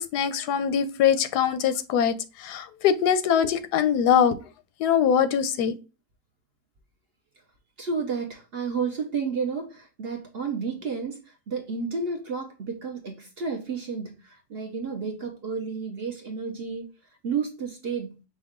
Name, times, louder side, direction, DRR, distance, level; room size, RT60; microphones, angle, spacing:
voice 1, 0.0-4.4 4.8-5.7, left 8 dB, 85° left, 1.2 m, -23 dB
voice 2, 7.8-16.9 17.2-18.2, right 5 dB, 50° right, 0.8 m, -31 dB
5.3 x 2.3 x 3.5 m
omnidirectional pair, 1.7 m